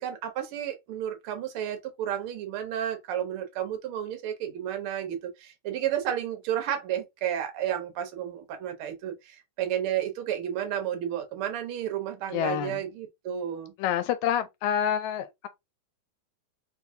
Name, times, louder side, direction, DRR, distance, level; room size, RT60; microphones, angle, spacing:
voice 1, 0.0-13.7, right 10 dB, 75° right, 1.2 m, -32 dB
voice 2, 12.3-12.8 13.8-15.5, left 9 dB, 80° left, 1.9 m, -27 dB
4.6 x 2.6 x 2.6 m
omnidirectional pair, 3.5 m